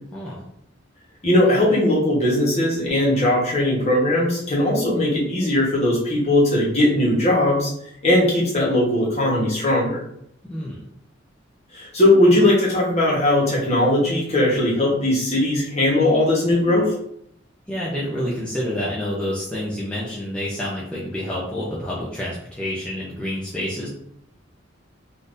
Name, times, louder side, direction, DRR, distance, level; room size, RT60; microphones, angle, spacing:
voice 1, 0.1-0.4 10.4-10.8 17.7-23.9, left 1 dB, 5° left, -8 dB, 0.5 m, -28 dB
voice 2, 1.2-7.7 8.0-10.0 11.7-16.9, left 1 dB, 35° left, -5 dB, 1.1 m, -19 dB
3.7 x 2.6 x 2.5 m, 0.73 s
head